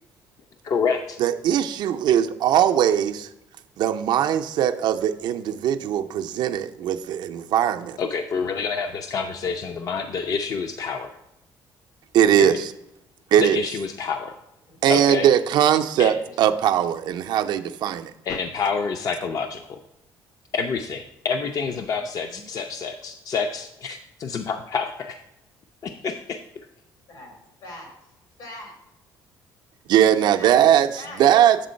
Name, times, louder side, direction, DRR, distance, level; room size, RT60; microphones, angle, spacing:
voice 1, 0.6-1.2 8.0-11.2 12.4-12.6 13.4-14.4 14.9-15.3 16.0-16.1 18.2-19.8 20.5-25.2 25.8-26.4, left 5 dB, 50° left, 6 dB, 0.4 m, -28 dB
voice 2, 1.2-3.3 3.8-8.0 12.1-12.7 13.3-13.6 14.8-18.1 29.9-30.9 31.2-31.6, right 10 dB, 70° right, 7 dB, 0.4 m, -20 dB
voice 3, 21.9-22.5 27.1-27.3 27.6-28.1 28.4-28.8 30.4-31.2, left 1 dB, 85° left, 0 dB, 2.6 m, -42 dB
7.8 x 3.7 x 5.1 m, 0.85 s
cardioid pair, 115°, 8 cm